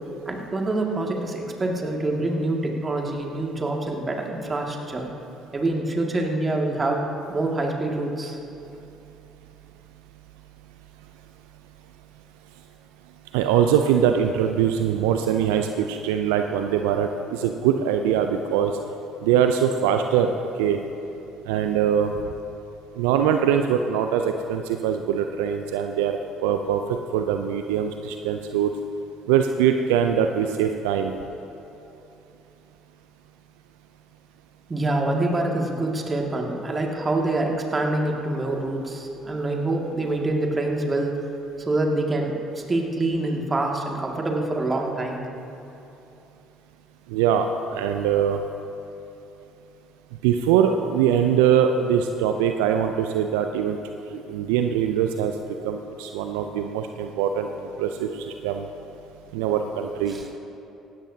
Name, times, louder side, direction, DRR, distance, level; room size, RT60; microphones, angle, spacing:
voice 1, 0.3-5.1 5.5-7.0 7.3-8.4 34.7-41.2 41.7-42.3 42.7-45.3 60.1-60.2, right 2 dB, 30° right, 0 dB, 2.1 m, -26 dB
voice 2, 13.3-18.7 19.2-20.3 20.6-20.8 21.5-22.1 23.0-28.7 29.3-31.1 47.1-47.5 47.7-48.4 50.2-53.8 54.1-55.3 55.6-57.5 57.8-58.7 59.3-60.4, right 8 dB, 75° right, 6 dB, 0.5 m, -22 dB
18.5 x 15.5 x 2.8 m, 2.9 s
hypercardioid pair, 55°, 0 cm